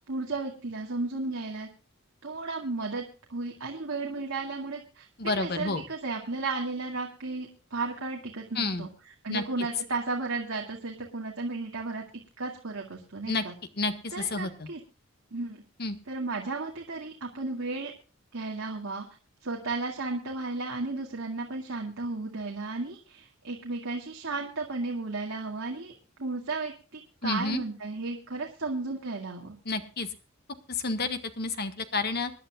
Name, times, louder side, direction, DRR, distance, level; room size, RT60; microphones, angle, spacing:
voice 1, 0.1-1.7 2.2-3.0 3.3-8.9 9.2-12.0 12.4-13.5 14.1-14.8 15.3-15.6 16.1-17.9 18.3-19.1 19.4-25.9 26.2-29.6, right 3 dB, 70° right, 0 dB, 2.2 m, -34 dB
voice 2, 5.2-5.8 8.5-8.9 9.3-9.4 13.3-13.4 13.8-14.7 15.8-16.0 27.2-27.6 29.6-30.1 30.7-32.3, left 3 dB, 50° left, 9 dB, 1.6 m, -30 dB
26.0 x 11.0 x 2.4 m, 0.34 s
head